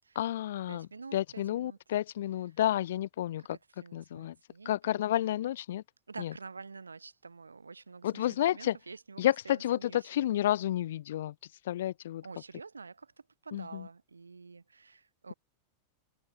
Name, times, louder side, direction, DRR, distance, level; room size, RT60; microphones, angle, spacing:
voice 1, 0.2-3.6 3.9-4.4 4.7-5.8 6.2-6.3 8.0-8.8 9.2-11.3 11.6-12.2 13.5-13.9, left 12 dB, 60° left, 0.5 m, -31 dB
voice 2, 0.7-1.8 3.5-5.2 6.1-10.1 12.2-15.3, right 4 dB, 75° right, 6.0 m, -48 dB
figure-of-eight pair, 90°, 0 cm